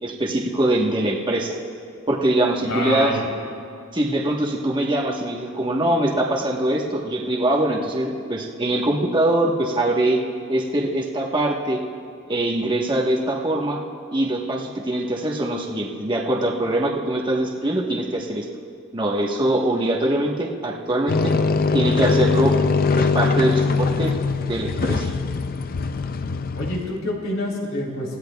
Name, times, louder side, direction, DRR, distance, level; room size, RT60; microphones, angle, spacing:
voice 1, 0.0-1.5 2.1-3.2 3.9-10.2 10.5-11.8 12.3-13.8 14.1-18.5 18.9-21.3 21.7-22.5 23.0-24.1 24.4-25.1, right 1 dB, 20° right, -2 dB, 1.2 m, -23 dB
voice 2, 2.6-3.3 26.5-28.2, left 1 dB, 70° left, -2 dB, 3.6 m, -27 dB
sound 1, 21.1-27.0, left 4 dB, 45° left, 0.4 m, -22 dB
28.0 x 15.5 x 2.3 m, 2.5 s
head